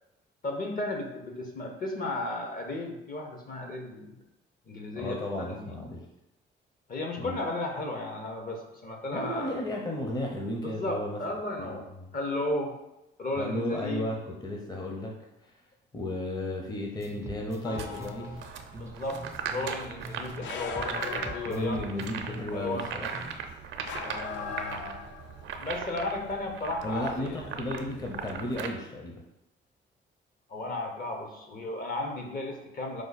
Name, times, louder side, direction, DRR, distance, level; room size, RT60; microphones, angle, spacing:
voice 1, 0.4-4.2 4.7-5.7 6.9-9.6 10.6-12.7 13.2-14.1 18.7-19.2 19.5-21.9 22.5-22.9 24.0-25.0 25.6-27.5 30.5-33.0, left 2 dB, 45° left, 3 dB, 0.9 m, -34 dB
voice 2, 5.0-6.1 7.2-7.4 9.1-11.2 11.6-12.1 13.4-15.2 15.9-18.4 21.5-23.1 26.8-29.2, left 1 dB, 20° left, 0 dB, 0.7 m, -34 dB
sound 1, 17.0-20.5 20.8-23.5, right 2 dB, 15° right, 0.4 m, -44 dB
sound 2, 17.6-18.7 20.4-22.2 23.8-25.5, left 6 dB, 70° left, 0.4 m, -39 dB
sound 3, 17.7-28.7, right 6 dB, 70° right, 0.5 m, -39 dB
4.7 x 2.3 x 4.0 m, 0.91 s
cardioid pair, 90°, 20 cm